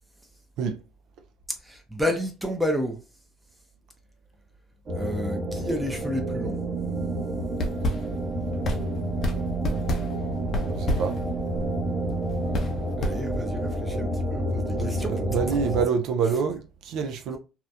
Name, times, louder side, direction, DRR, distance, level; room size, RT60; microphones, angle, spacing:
voice 1, 1.6-3.0 4.9-6.6 13.0-15.8 16.2-16.4, left 1 dB, 5° right, 0.6 m, -31 dB
sound 1, 4.9-15.9, right 1 dB, 40° right, 0.8 m, -29 dB
sound 2, 7.5-13.7, left 1 dB, 45° left, 0.6 m, -31 dB
voice 2, 10.6-11.2 14.8-17.4, right 6 dB, 65° right, 0.4 m, -27 dB
2.7 x 2.1 x 2.3 m
supercardioid pair, 95°, 0 cm